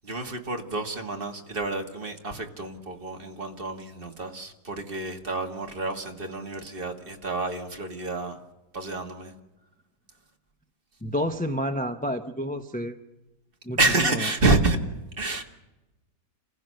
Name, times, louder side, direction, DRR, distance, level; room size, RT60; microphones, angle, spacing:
voice 1, 0.0-8.4 8.7-9.3 13.8-14.8 15.2-15.4, right 3 dB, 30° right, 3 dB, 2.0 m, -28 dB
voice 2, 11.0-13.0 13.6-13.8 14.1-14.3, equal, 10° left, 6 dB, 0.5 m, -29 dB
28.5 x 15.5 x 6.5 m, 1.0 s
omnidirectional pair, 1.8 m